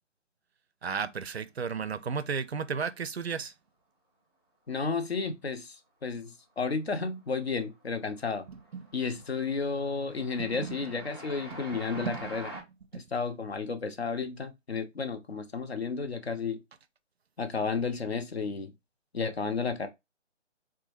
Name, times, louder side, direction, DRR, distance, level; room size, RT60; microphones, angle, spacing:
voice 1, 0.8-3.5 8.5-8.9 10.4-10.8 11.9-12.6 12.9-13.0, right 6 dB, 60° right, 0.4 m, -34 dB
voice 2, 4.7-8.5 8.9-12.5 12.9-16.6 17.4-18.7 19.1-19.9, left 4 dB, 60° left, 0.7 m, -32 dB
Train, 7.0-7.4 7.7-12.6, right 1 dB, 20° left, 0.5 m, -46 dB
4.1 x 2.2 x 3.0 m
figure-of-eight pair, 150°, 37 cm